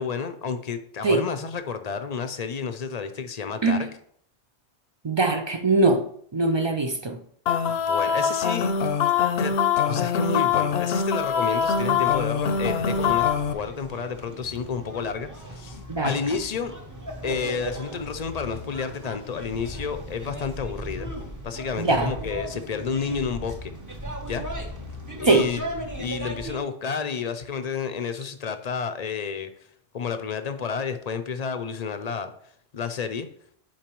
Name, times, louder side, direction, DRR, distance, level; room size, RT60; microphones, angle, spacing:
voice 1, 0.0-3.9 7.7-8.7 9.4-9.6 9.8-16.7 17.2-21.1 21.4-23.7 24.3-24.4 25.2-25.6 26.0-29.5 29.9-32.3 32.7-33.3, left 6 dB, 45° left, 0.6 m, -30 dB
voice 2, 5.0-6.1 6.3-7.2 15.9-16.2 21.8-22.1 25.3-25.5, right 3 dB, 40° right, 0.4 m, -21 dB
sound 1, 7.5-13.5, left 7 dB, 70° left, 0.9 m, -23 dB
sound 2, 11.1-26.6, equal, 20° right, 0.9 m, -37 dB
10.5 x 4.6 x 3.0 m
omnidirectional pair, 1.1 m